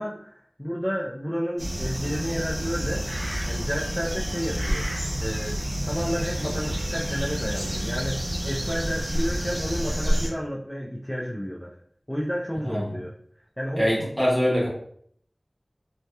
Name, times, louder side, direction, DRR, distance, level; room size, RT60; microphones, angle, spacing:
voice 1, 0.0-3.1 3.5-4.8 5.2-11.7 12.1-13.1 13.6-14.1, equal, 10° left, -6 dB, 0.4 m, -31 dB
sound 1, 1.6-10.3, equal, 75° right, 0.9 m, -29 dB
voice 2, 13.8-14.7, equal, 15° right, -6 dB, 1.2 m, -23 dB
2.7 x 2.1 x 2.2 m, 0.64 s
wide cardioid pair, 45°, 0 cm